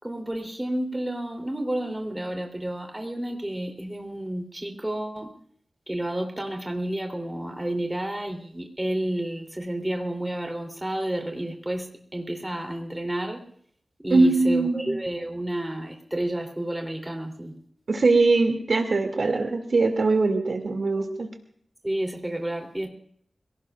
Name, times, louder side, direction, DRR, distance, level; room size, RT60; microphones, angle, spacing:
voice 1, 0.0-5.3 5.9-11.9 12.1-13.4 14.0-17.5 21.8-22.9, right 1 dB, 15° right, 3 dB, 3.1 m, -30 dB
voice 2, 14.1-15.0 17.9-21.3, right 3 dB, 65° right, 4 dB, 2.4 m, -21 dB
27.0 x 18.0 x 2.4 m, 0.63 s
wide cardioid pair, 80°, 0 cm